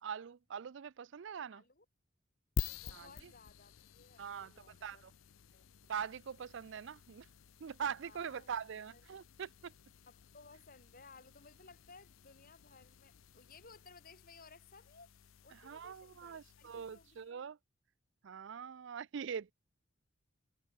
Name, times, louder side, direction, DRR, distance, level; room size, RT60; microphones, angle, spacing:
voice 1, 0.0-1.6 2.9-3.3 4.2-5.1 5.9-7.3 7.6-9.7 15.5-17.6 18.2-19.5, right 7 dB, 65° right, 0.4 m, -43 dB
voice 2, 1.5-1.9 2.7-5.0 5.4-5.7 8.0-8.5 8.9-9.0 10.1-15.1 15.4-17.5, left 4 dB, 45° left, 7.0 m, -60 dB
sound 1, 2.6-17.3, left 5 dB, 85° left, 0.6 m, -49 dB
head